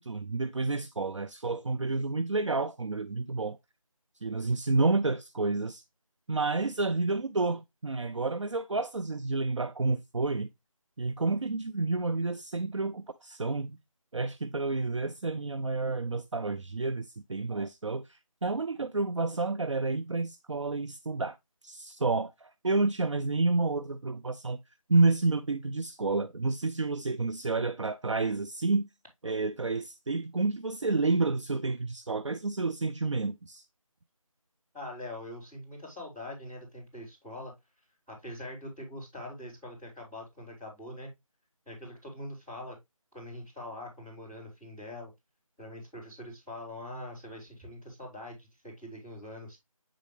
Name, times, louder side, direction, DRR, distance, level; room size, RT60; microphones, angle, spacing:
voice 1, 0.0-3.6 4.2-5.8 6.3-10.5 11.0-13.8 14.1-21.4 21.6-24.6 24.9-28.9 29.2-33.6, right 3 dB, 55° right, 0.5 m, -30 dB
voice 2, 34.7-37.5 38.1-41.1 41.6-42.8 43.1-45.1 45.6-49.6, left 1 dB, 5° right, 2.9 m, -43 dB
8.4 x 3.7 x 3.3 m
figure-of-eight pair, 175°, 18 cm